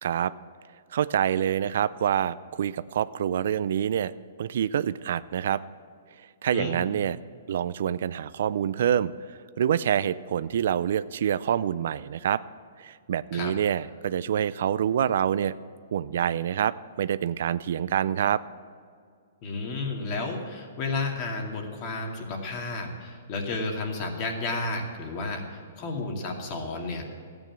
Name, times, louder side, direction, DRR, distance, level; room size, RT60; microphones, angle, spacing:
voice 1, 0.0-0.3 0.9-4.1 4.4-5.6 6.4-7.2 7.5-12.4 12.8-15.6 15.9-18.4, right 9 dB, 65° right, 16 dB, 0.4 m, -26 dB
voice 2, 19.4-27.0, left 3 dB, 40° left, 2 dB, 2.4 m, -32 dB
13.5 x 9.0 x 7.6 m, 2.2 s
hypercardioid pair, 140°, 0 cm